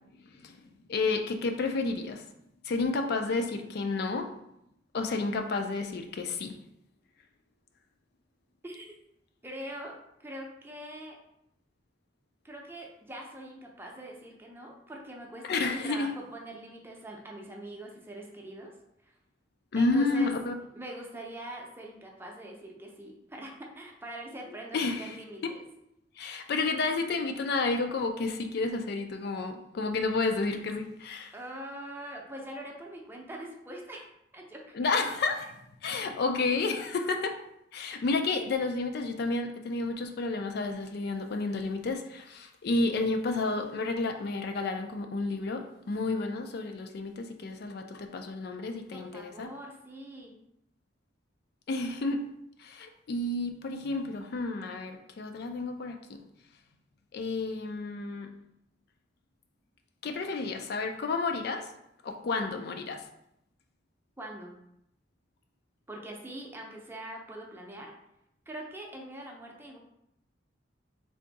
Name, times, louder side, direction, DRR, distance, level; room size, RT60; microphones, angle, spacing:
voice 1, 0.9-2.2 2.6-4.3 4.9-6.6 15.5-16.1 19.7-20.5 24.7-25.2 25.4-25.5 26.2-31.3 34.7-35.6 35.8-37.4 37.7-49.5 51.7-52.3 52.6-56.2 57.1-58.3 60.0-61.7 62.0-63.0, left 3 dB, 60° left, 5 dB, 0.4 m, -31 dB
voice 2, 8.6-9.0 9.4-11.2 12.4-18.7 19.0-19.1 19.8-20.3 20.7-25.6 31.3-34.1 34.3-34.9 48.9-50.3 64.2-64.5 65.9-67.9 68.5-69.8, right 1 dB, 10° right, 0 dB, 0.6 m, -43 dB
3.4 x 2.6 x 4.0 m, 0.78 s
head